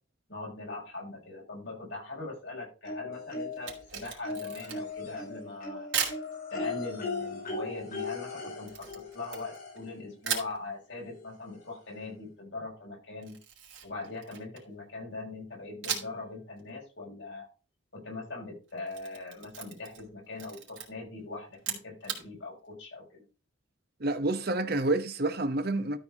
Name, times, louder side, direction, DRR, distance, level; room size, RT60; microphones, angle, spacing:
voice 1, 0.3-5.9 6.5-13.4 13.8-17.5 17.9-23.2, left 3 dB, 60° left, 6.4 m, -41 dB
sound 1, 2.8-3.8 4.2-9.9 11.1-11.2 11.6-11.7, left 3 dB, 45° left, 5.4 m, -38 dB
Camera, 3.5-5.0 5.9-6.2 8.7-9.8 10.2-10.6 13.2-14.7 15.8-16.3 16.6-16.7 18.7-20.1 20.4-20.9 21.5-22.2, right 7 dB, 65° right, 3.3 m, -36 dB
voice 2, 24.0-26.0, right 2 dB, 50° right, 1.0 m, -28 dB
13.0 x 4.7 x 4.9 m
head